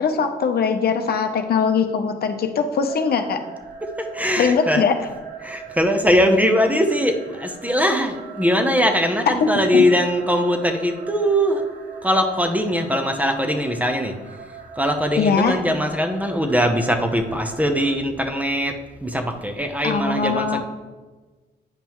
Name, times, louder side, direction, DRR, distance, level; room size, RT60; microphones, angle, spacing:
voice 1, 0.0-3.4 4.4-4.9 9.4-9.8 15.2-15.6 19.8-20.6, left 5 dB, 60° left, 6 dB, 0.7 m, -21 dB
sound 1, 2.9-17.9, right 4 dB, 70° right, 1.0 m, -40 dB
voice 2, 3.8-4.9 5.4-11.6 12.0-14.1 14.8-20.6, equal, 10° right, 5 dB, 0.7 m, -21 dB
9.0 x 5.3 x 3.1 m, 1.3 s
cardioid pair, 95°, 18 cm